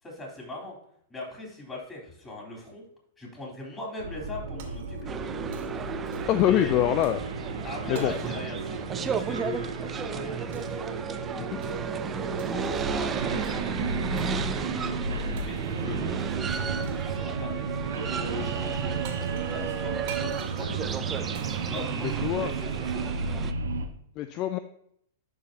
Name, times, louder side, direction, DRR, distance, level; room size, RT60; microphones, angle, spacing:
voice 1, 0.0-0.8 1.1-2.8 3.2-5.1 6.5-6.8 7.6-10.8 12.5-13.7 14.5-17.6 17.9-19.0 19.5-21.0 21.7-23.1, left 2 dB, 15° left, -2 dB, 3.5 m, -39 dB
sound 1, 4.0-23.9, right 4 dB, 75° right, 1.0 m, -33 dB
Shatter, 4.6-5.3 5.5-6.5 7.0-7.3 7.9-9.5 10.5-10.9 11.6-11.9 12.4-12.9 13.4-13.6 14.2-14.4 15.4-15.9 16.8-17.2 18.7-18.8 19.0-22.6, right 7 dB, 55° right, 1.8 m, -49 dB
sound 2, 5.1-23.5, right 7 dB, 20° right, 0.5 m, -34 dB
voice 2, 6.3-7.2 7.9-8.1 11.4-11.6 22.0-22.5 24.2-24.6, left 12 dB, 40° left, 11 dB, 0.4 m, -25 dB
12.0 x 4.8 x 2.9 m, 0.68 s
hypercardioid pair, 110°, 0 cm